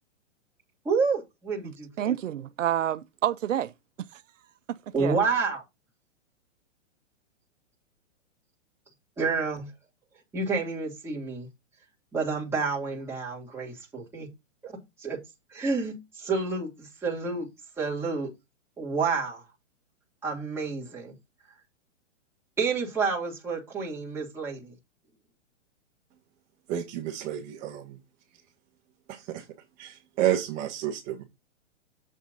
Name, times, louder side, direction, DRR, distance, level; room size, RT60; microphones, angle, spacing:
voice 1, 0.8-2.1 4.9-5.6 9.2-9.7 10.3-11.5 12.1-14.3 14.6-14.7 15.0-15.2 15.5-17.5 17.8-18.3 18.8-19.4 20.2-21.1 22.6-24.7, right 4 dB, 5° right, 2.9 m, -29 dB
voice 2, 1.6-3.7 4.1-4.2 4.7-5.2, right 11 dB, 85° right, 0.7 m, -29 dB
voice 3, 26.7-28.0 29.1-29.5 29.8-31.2, right 11 dB, 20° right, 1.4 m, -30 dB
7.7 x 6.2 x 3.9 m
hypercardioid pair, 155°, 37 cm